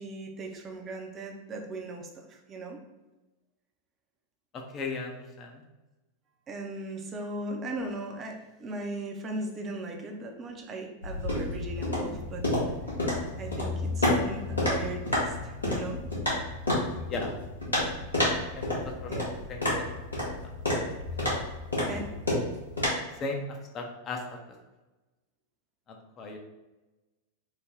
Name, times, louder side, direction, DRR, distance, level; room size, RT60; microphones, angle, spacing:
voice 1, 0.0-2.8 6.5-12.5 13.4-16.1 19.1-19.3 21.9-22.1, right 2 dB, 25° right, 3 dB, 0.6 m, -38 dB
voice 2, 4.5-5.6 17.1-17.3 18.6-18.7 19.0-19.1 19.5-19.6 23.2-24.2 25.9-26.4, left 3 dB, 30° left, 2 dB, 0.6 m, -36 dB
sound 1, 11.0-22.9, left 1 dB, 80° left, 1.1 m, -30 dB
3.2 x 2.2 x 3.6 m, 1.1 s
figure-of-eight pair, 90°, 0 cm